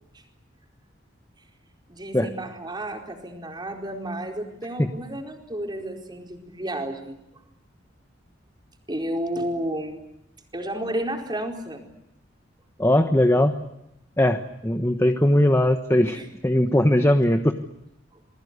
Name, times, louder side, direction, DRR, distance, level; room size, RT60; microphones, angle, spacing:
voice 1, 1.9-7.4 8.9-10.0 10.5-11.9 16.1-16.3, right 1 dB, 25° right, 2 dB, 4.6 m, -32 dB
voice 2, 12.8-13.5 14.2-16.2 16.4-17.5, left 1 dB, 15° left, 7 dB, 1.3 m, -19 dB
29.0 x 21.0 x 8.2 m, 0.82 s
head